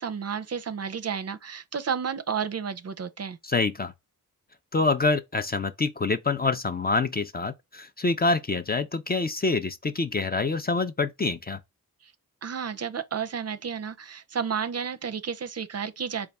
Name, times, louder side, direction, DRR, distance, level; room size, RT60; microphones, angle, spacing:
voice 1, 0.0-3.4 12.0-12.1 12.4-16.3, right 7 dB, 45° right, 0.5 m, -32 dB
voice 2, 3.4-3.9 4.7-11.6, left 3 dB, 25° left, 0.4 m, -26 dB
4.0 x 2.3 x 3.4 m
cardioid pair, 50°, 37 cm